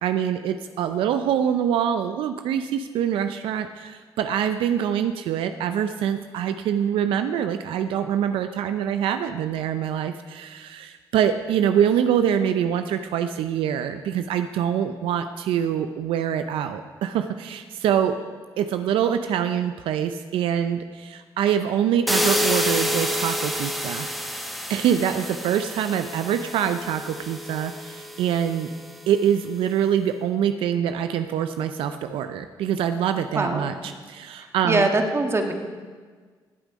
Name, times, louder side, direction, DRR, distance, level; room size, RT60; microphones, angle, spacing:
voice 1, 0.0-18.2 18.6-24.1 24.7-28.7 29.1-34.9, right 9 dB, 85° right, 9 dB, 0.5 m, -25 dB
sound 1, 22.1-28.9, left 1 dB, ahead, 1.6 m, -28 dB
voice 2, 33.3-33.7 34.6-35.5, right 2 dB, 30° right, 4 dB, 1.7 m, -22 dB
16.5 x 8.2 x 5.1 m, 1.5 s
supercardioid pair, 65°, 9 cm